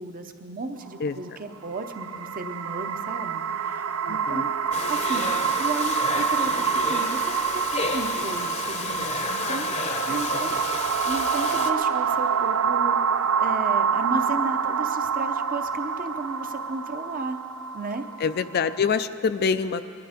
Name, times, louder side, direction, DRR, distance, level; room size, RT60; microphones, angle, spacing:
voice 1, 0.0-4.5 4.9-5.3 5.6-10.6 11.0-17.4 17.7-18.0, right 3 dB, 45° right, 6 dB, 0.8 m, -34 dB
sound 1, 1.6-18.8, right 6 dB, 85° right, 0.5 m, -27 dB
voice 2, 4.0-4.5 10.1-10.4 18.2-19.9, left 5 dB, 50° left, 11 dB, 0.4 m, -26 dB
Domestic sounds home sounds, 4.7-11.7, left 4 dB, 35° left, 0.8 m, -31 dB
20.5 x 11.5 x 5.1 m, 2.8 s
head